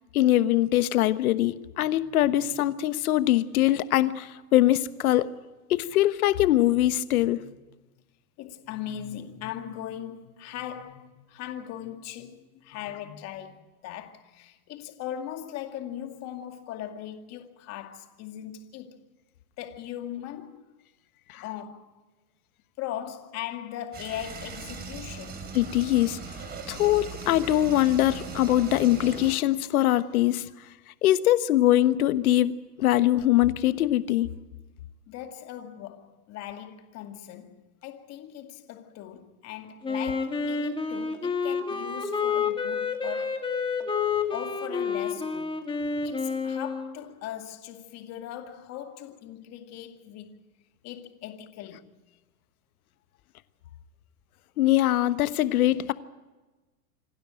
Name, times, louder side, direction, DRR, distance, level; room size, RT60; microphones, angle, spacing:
voice 1, 0.1-5.3 5.7-7.4 21.3-21.4 25.5-26.2 26.7-30.5 31.0-34.3 54.6-55.9, left 14 dB, 65° left, 1.3 m, -22 dB
voice 2, 1.8-2.6 7.1-7.5 8.4-19.0 19.6-20.7 21.4-22.0 22.8-25.4 35.1-43.5 44.3-45.6 46.0-50.4 50.8-51.9, left 11 dB, 35° left, 2.3 m, -39 dB
sound 1, 23.9-29.4, right 5 dB, 20° right, 3.3 m, -39 dB
Wind instrument woodwind instrument, 39.8-46.9, left 5 dB, 10° left, 1.9 m, -29 dB
27.5 x 12.5 x 8.9 m
hypercardioid pair, 135°, 46 cm